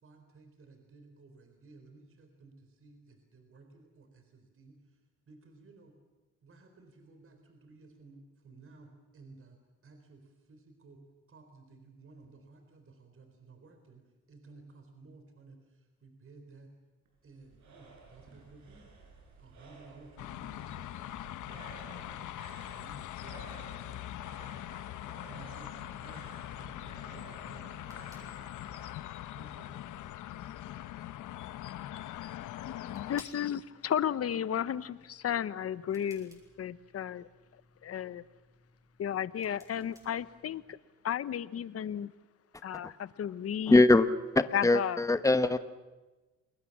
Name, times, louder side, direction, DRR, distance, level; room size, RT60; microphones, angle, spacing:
voice 1, 0.0-5.0 5.3-5.9 6.4-11.0 11.3-16.7 17.2-18.9 19.4-29.0 29.3-30.4, right 3 dB, 45° right, 6 dB, 4.2 m, -56 dB
sound 1, 17.0-28.9, right 4 dB, 70° right, 7.8 m, -54 dB
sound 2, 20.2-33.2, left 13 dB, 80° left, 0.9 m, -42 dB
sound 3, 27.3-40.8, equal, 10° right, 7.9 m, -62 dB
voice 2, 32.7-37.3 37.8-38.2 39.0-40.6 41.0-42.1 42.6-43.8 44.5-45.0, left 9 dB, 50° left, 16 dB, 0.9 m, -33 dB
voice 3, 43.7-44.1 44.3-45.6, left 2 dB, 10° left, 11 dB, 1.1 m, -22 dB
28.5 x 21.0 x 7.3 m, 1.2 s
cardioid pair, 90°, 30 cm